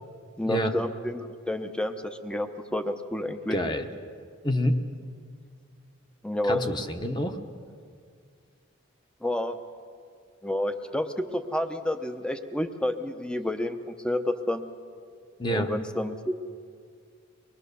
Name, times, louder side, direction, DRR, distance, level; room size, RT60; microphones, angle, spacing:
voice 1, 0.4-3.6 6.2-6.7 9.2-9.6 10.4-14.6 15.5-16.4, left 1 dB, 5° left, 8 dB, 0.8 m, -30 dB
voice 2, 3.5-3.9 4.4-4.8 6.5-7.4 15.4-15.7, equal, 20° left, 5 dB, 1.1 m, -27 dB
24.0 x 20.5 x 6.9 m, 2.1 s
head